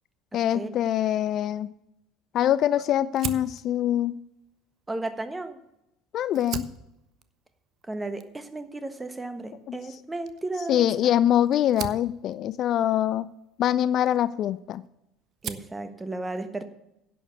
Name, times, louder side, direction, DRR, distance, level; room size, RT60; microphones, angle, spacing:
voice 1, 0.3-1.7 2.3-4.2 6.1-6.7 9.7-9.8 10.7-13.3 13.6-14.8, left 11 dB, 50° left, 17 dB, 0.3 m, -24 dB
Fire, 3.1-5.8 6.2-14.9 15.2-15.8, right 8 dB, 45° right, 0.7 m, -41 dB
voice 2, 4.9-5.6 7.9-11.1 15.4-16.6, right 2 dB, 15° right, 9 dB, 1.3 m, -34 dB
10.5 x 7.0 x 6.9 m, 0.84 s
figure-of-eight pair, 65°, 0 cm